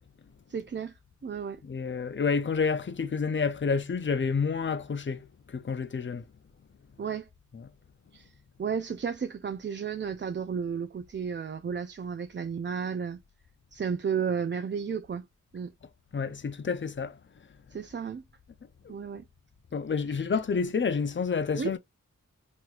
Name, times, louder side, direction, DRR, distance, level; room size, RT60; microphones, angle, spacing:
voice 1, 0.5-1.0 1.2-1.6 7.0-7.3 8.1-8.3 8.6-13.2 13.7-15.3 15.5-15.7 17.7-18.2 18.9-19.2 20.1-20.2 21.6-21.7, right 6 dB, 35° right, 0.4 m, -33 dB
voice 2, 1.6-6.2 7.5-7.7 16.1-17.2 18.8-18.9 19.7-21.8, left 5 dB, 40° left, 0.5 m, -29 dB
3.1 x 3.0 x 2.4 m
cardioid pair, 45°, 32 cm